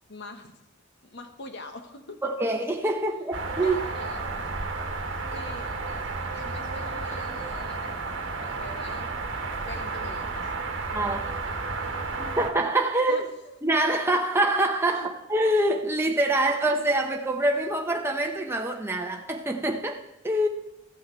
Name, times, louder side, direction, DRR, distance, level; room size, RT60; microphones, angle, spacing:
voice 1, 0.1-0.5 1.0-2.2 3.6-4.3 5.3-5.7 6.3-8.0 8.6-9.1 9.6-10.5 13.1-13.6 14.9-15.1, left 2 dB, 60° left, 1.1 m, -43 dB
voice 2, 2.2-3.8 10.9-11.4 12.2-13.2 13.6-20.5, right 1 dB, 10° right, 0.8 m, -25 dB
sound 1, 3.3-12.5, right 3 dB, 65° right, 1.3 m, -32 dB
15.5 x 6.4 x 4.5 m
head